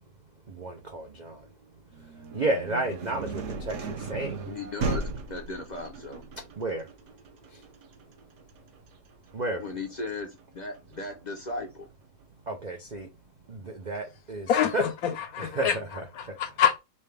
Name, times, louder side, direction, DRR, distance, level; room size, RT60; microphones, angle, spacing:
voice 1, 0.5-1.5 2.0-4.5 6.6-7.2 7.5-7.7 9.3-9.6 12.5-13.1 13.5-14.8 15.4-16.4, right 2 dB, 75° right, 0.4 m, -33 dB
sound 1, 1.9-11.7, right 3 dB, 55° right, 0.8 m, -37 dB
voice 2, 4.5-5.0 5.3-6.2 9.6-10.3 10.5-11.9, left 3 dB, 50° left, 0.5 m, -36 dB
voice 3, 14.5-15.8 16.2-16.8, left 9 dB, 70° left, 0.9 m, -26 dB
5.3 x 2.2 x 3.3 m
omnidirectional pair, 1.8 m